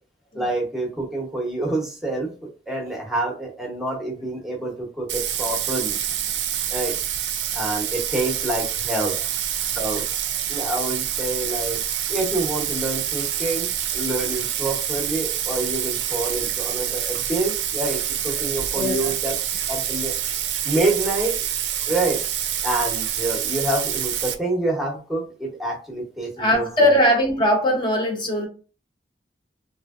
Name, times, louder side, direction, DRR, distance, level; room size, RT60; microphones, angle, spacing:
voice 1, 0.3-2.3 2.7-6.0 6.7-6.9 7.5-9.1 9.7-10.0 10.5-11.8 12.1-13.7 13.9-19.3 19.7-20.1 20.6-21.3 21.9-22.2 22.6-26.9, right 2 dB, ahead, 0.8 m, -27 dB
Bathtub (filling or washing), 5.1-24.3, right 10 dB, 80° right, 0.4 m, -27 dB
voice 2, 18.7-19.1 26.4-28.5, equal, 25° left, 0.9 m, -20 dB
3.1 x 2.6 x 2.4 m
head